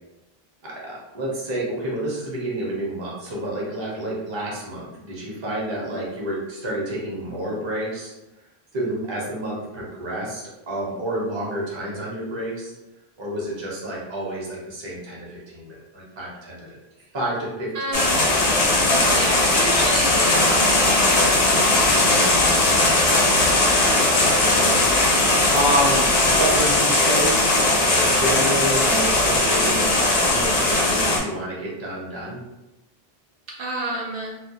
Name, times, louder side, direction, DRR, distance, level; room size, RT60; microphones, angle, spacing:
voice 1, 0.6-8.1 8.7-12.7 13.2-16.8 17.1-18.2 23.5-27.4 27.9-32.4, right 1 dB, 30° right, -4 dB, 0.6 m, -29 dB
voice 2, 17.7-18.6 19.1-23.2 33.6-34.4, right 2 dB, 70° right, -3 dB, 0.8 m, -31 dB
sound 1, 17.9-31.2, left 2 dB, 50° left, 0.5 m, -19 dB
2.3 x 2.1 x 2.8 m, 0.97 s
omnidirectional pair, 1.0 m